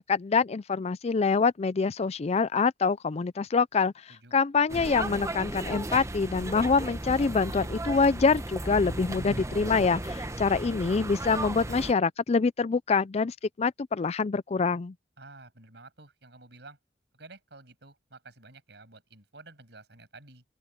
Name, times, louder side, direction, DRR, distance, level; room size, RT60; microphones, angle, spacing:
voice 1, 0.0-3.9 4.3-14.9, left 4 dB, 35° left, 0.4 m, -25 dB
voice 2, 4.1-4.4 15.2-16.8 17.1-20.4, right 3 dB, 70° right, 7.7 m, -51 dB
sound 1, 4.7-11.9, right 1 dB, 15° right, 1.0 m, -35 dB
open air
head